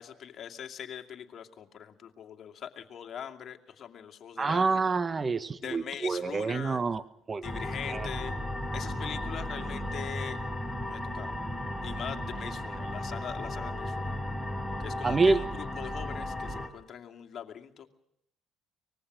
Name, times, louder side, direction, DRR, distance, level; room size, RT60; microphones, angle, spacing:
voice 1, 0.0-4.9 5.6-6.8 7.4-8.3 8.7-10.4 10.9-11.4 11.8-14.2 14.8-17.9, left 8 dB, 55° left, 3 dB, 2.5 m, -42 dB
voice 2, 4.4-7.0 7.3-7.4 7.9-8.1 15.0-15.4, right 4 dB, 30° right, 14 dB, 1.2 m, -27 dB
sound 1, 7.4-16.7, left 1 dB, 5° left, 4.4 m, -35 dB
24.0 x 20.5 x 6.4 m, 0.76 s
hypercardioid pair, 60°, 0 cm